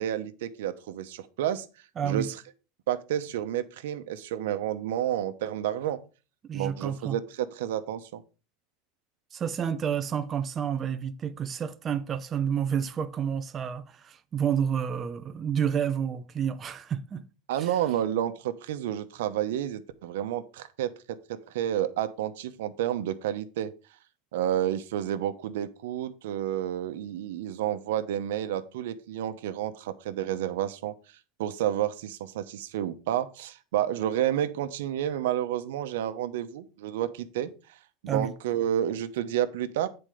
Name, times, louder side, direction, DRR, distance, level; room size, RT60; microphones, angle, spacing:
voice 1, 0.0-1.7 2.0-2.4 2.9-6.0 6.5-8.2 17.5-23.7 24.3-30.9 31.4-39.9, right 11 dB, 85° right, 0.9 m, -30 dB
voice 2, 2.0-2.3 6.5-7.2 9.3-17.2 17.6-17.7 38.1-38.3, right 8 dB, 20° right, 0.6 m, -29 dB
9.4 x 4.4 x 5.0 m
supercardioid pair, 160°, 0 cm